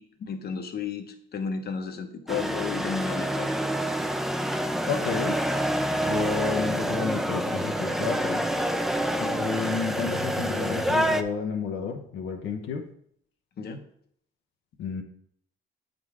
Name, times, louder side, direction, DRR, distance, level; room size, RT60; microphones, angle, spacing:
voice 1, 0.0-3.5 9.2-9.4 13.6-13.8, left 5 dB, 55° left, 6 dB, 1.0 m, -33 dB
sound 1, 2.3-11.2, equal, ahead, 0.5 m, -27 dB
voice 2, 4.9-5.4 6.0-8.4 9.4-12.8 14.8-15.0, left 5 dB, 80° left, 3 dB, 0.8 m, -31 dB
7.7 x 3.8 x 4.8 m, 0.66 s
cardioid pair, 90°, 20 cm